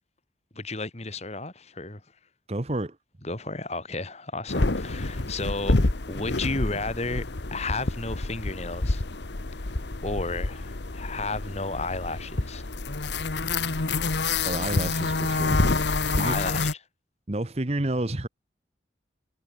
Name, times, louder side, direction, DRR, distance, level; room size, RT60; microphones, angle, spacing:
voice 1, 0.5-2.0 3.2-5.8 6.1-9.0 10.0-12.6 16.2-16.8, left 3 dB, 35° left, 2.6 m, -33 dB
voice 2, 2.5-3.0 14.4-15.6 16.1-16.4 17.3-18.3, right 1 dB, 35° right, 1.1 m, -29 dB
sound 1, 4.5-16.7, left 3 dB, 70° left, 1.3 m, -28 dB
head